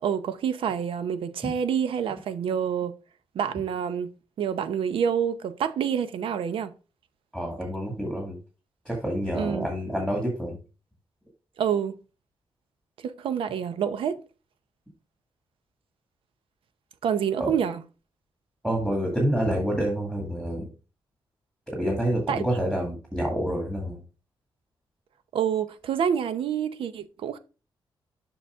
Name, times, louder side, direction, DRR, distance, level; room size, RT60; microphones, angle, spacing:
voice 1, 0.0-2.9 3.3-4.1 4.4-6.7 9.3-9.7 11.6-12.0 13.0-14.2 17.0-17.8 22.3-22.4 25.3-27.4, right 8 dB, 80° right, 0.7 m, -27 dB
voice 2, 7.3-8.4 8.9-10.6 17.4-17.5 18.6-20.7 21.8-24.0, right 1 dB, 5° right, 2.0 m, -28 dB
7.0 x 5.7 x 3.5 m
wide cardioid pair, 160°, 9 cm